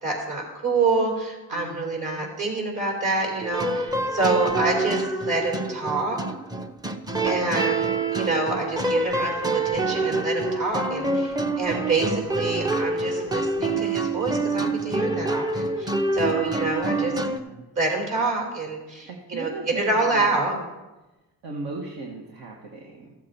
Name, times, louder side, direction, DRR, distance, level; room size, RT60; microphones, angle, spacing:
voice 1, 0.0-6.2 7.2-17.1 17.8-20.5, right 3 dB, 50° right, 1 dB, 3.6 m, -27 dB
voice 2, 1.5-2.3 8.2-8.3 16.9-17.7 19.0-20.7 21.4-23.1, right 3 dB, 70° right, 0 dB, 1.6 m, -38 dB
sound 1, 3.4-17.4, right 2 dB, 10° right, 0.6 m, -26 dB
14.5 x 7.4 x 4.3 m, 1.1 s
cardioid pair, 110°, 38 cm